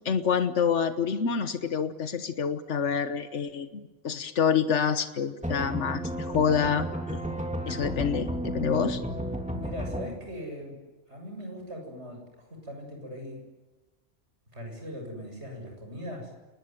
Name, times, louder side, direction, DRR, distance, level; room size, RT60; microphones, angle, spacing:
voice 1, 0.0-6.9 7.7-9.0, left 7 dB, 85° left, 10 dB, 1.5 m, -27 dB
sound 1, 5.4-10.1, equal, 5° right, 2.9 m, -32 dB
voice 2, 9.5-10.8 11.1-13.4 14.5-16.3, equal, 75° right, 2 dB, 7.7 m, -40 dB
29.5 x 20.0 x 9.4 m, 1.2 s
omnidirectional pair, 1.2 m